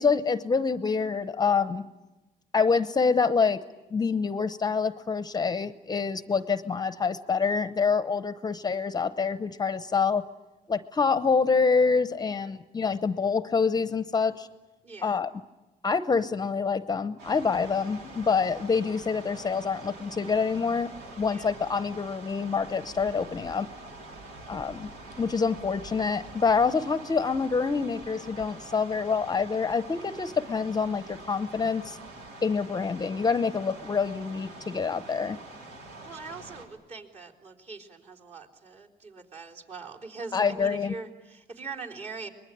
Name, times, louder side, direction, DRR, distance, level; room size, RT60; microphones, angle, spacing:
voice 1, 0.0-1.9 2.5-3.6 3.9-10.2 10.7-14.5 15.0-15.3 15.8-23.7 24.5-24.9 25.2-32.0 32.4-35.4 40.3-40.9, left 5 dB, 25° left, 12 dB, 0.8 m, -26 dB
voice 2, 14.8-15.2 21.3-21.5 36.0-42.3, right 4 dB, 40° right, -1 dB, 3.8 m, -42 dB
sound 1, 17.2-36.7, right 2 dB, 85° right, 4.3 m, -45 dB
24.5 x 21.0 x 10.0 m, 1.1 s
cardioid pair, 110°, 17 cm